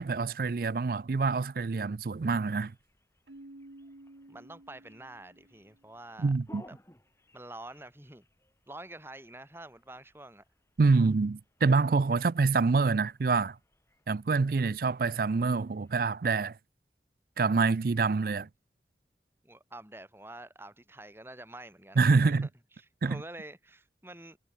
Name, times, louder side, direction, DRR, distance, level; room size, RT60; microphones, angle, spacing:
voice 1, 0.0-2.7 6.2-6.6 10.8-13.6 14.1-16.6 17.4-18.5 22.0-22.5 23.0-23.2, right 4 dB, 55° right, 0.4 m, -26 dB
sound 1, 2.4-16.0, left 1 dB, 15° left, 5.7 m, -62 dB
Keyboard (musical), 3.3-5.9, right 1 dB, 85° right, 1.7 m, -52 dB
voice 2, 4.3-6.3 6.7-6.8 7.3-8.3 8.7-10.4 19.4-22.2 23.0-24.4, right 1 dB, 15° right, 3.8 m, -47 dB
head